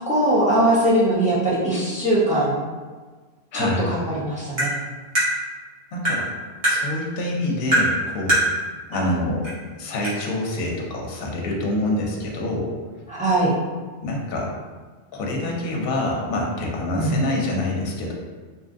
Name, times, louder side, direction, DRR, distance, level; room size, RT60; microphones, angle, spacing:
voice 1, 0.0-2.6 3.5-4.7 9.0-9.1 13.1-13.5 17.0-17.3, right 1 dB, 15° right, -8 dB, 0.3 m, -21 dB
voice 2, 3.5-3.9 5.9-6.3 6.7-8.4 8.9-9.5 9.8-12.7 14.0-14.5 15.1-18.1, left 1 dB, 65° left, -1 dB, 0.7 m, -26 dB
Tap, 4.6-4.7 5.2-5.3 6.0-6.2 6.6-6.8 7.7-7.9 8.3-8.5 9.4-9.5 10.0-10.1, right 1 dB, 75° right, 1.4 m, -20 dB
2.8 x 2.4 x 2.4 m, 1.4 s
omnidirectional pair, 1.2 m